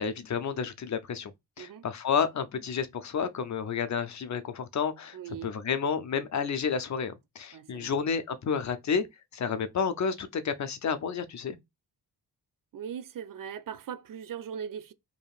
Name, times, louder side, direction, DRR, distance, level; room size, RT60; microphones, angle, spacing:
voice 1, 0.0-1.3 1.6-5.2 5.4-9.1 9.3-11.6, left 6 dB, 45° left, 0.5 m, -30 dB
voice 2, 5.1-5.5 7.5-7.9 12.7-14.9, right 8 dB, 55° right, 0.5 m, -39 dB
4.9 x 2.8 x 2.3 m
cardioid pair, 105°, 40 cm